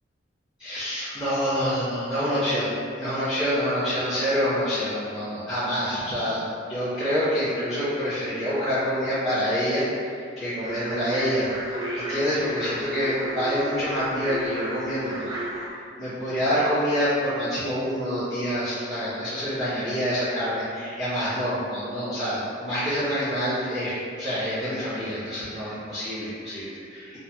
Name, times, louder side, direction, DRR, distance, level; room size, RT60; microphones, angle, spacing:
voice 1, 0.6-6.4 6.7-9.8 10.4-15.4 16.0-27.2, equal, 25° left, -17 dB, 1.2 m, -27 dB
sound 1, 10.6-15.7, right 1 dB, 20° right, 0.3 m, -34 dB
3.3 x 2.1 x 2.8 m, 2.3 s
head